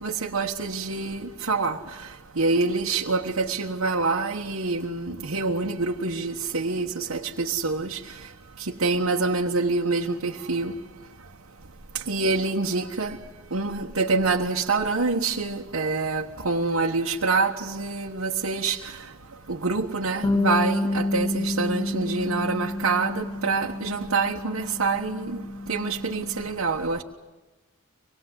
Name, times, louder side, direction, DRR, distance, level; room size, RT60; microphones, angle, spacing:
voice 1, 0.0-1.8 2.4-8.0 8.8-10.7 12.1-13.2 13.5-18.8 19.5-25.4 25.7-27.0, right 3 dB, 90° right, 1.3 m, -26 dB
Bass guitar, 20.2-26.5, left 2 dB, 15° left, 1.0 m, -29 dB
25.5 x 20.5 x 8.0 m
head